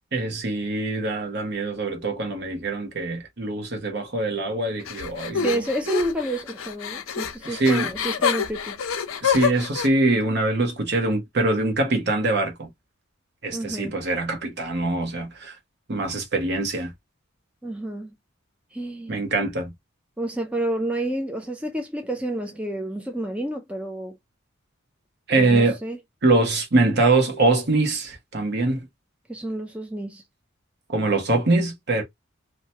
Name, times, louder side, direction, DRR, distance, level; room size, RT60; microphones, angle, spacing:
voice 1, 0.1-5.6 7.4-7.9 9.2-12.7 13.4-15.6 15.9-16.9 19.1-19.7 25.3-25.8 26.2-28.9 30.9-32.0, right 2 dB, 55° right, 1.0 m, -23 dB
sound 1, 4.9-9.9, left 7 dB, 75° left, 0.5 m, -27 dB
voice 2, 5.3-8.8 13.5-14.0 17.6-18.1 18.7-19.2 20.2-24.2 25.4-26.0 29.3-30.2, right 1 dB, 5° right, 0.4 m, -29 dB
2.9 x 2.2 x 2.7 m
head